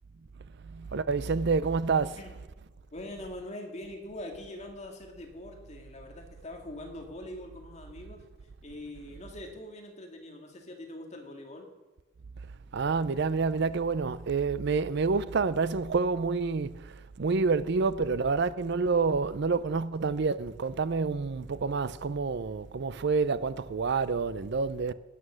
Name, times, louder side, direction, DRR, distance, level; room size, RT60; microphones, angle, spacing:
voice 1, 0.6-2.2 12.7-24.9, right 4 dB, 55° right, 0.5 m, -28 dB
voice 2, 2.9-8.2 8.6-11.7, left 1 dB, 35° left, 2.1 m, -43 dB
17.0 x 9.6 x 6.3 m
head